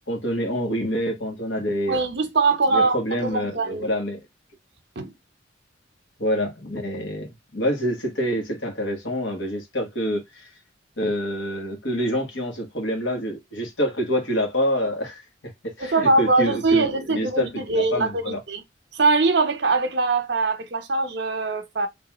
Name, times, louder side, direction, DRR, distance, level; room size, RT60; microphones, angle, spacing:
voice 1, 0.1-2.0 2.7-4.2 6.2-10.5 11.0-15.2 15.6-18.4, equal, 70° left, 1.6 m, -27 dB
voice 2, 1.9-3.9 5.0-5.1 15.8-18.6 18.9-21.9, right 3 dB, 60° right, 0.8 m, -22 dB
3.6 x 2.9 x 3.0 m
head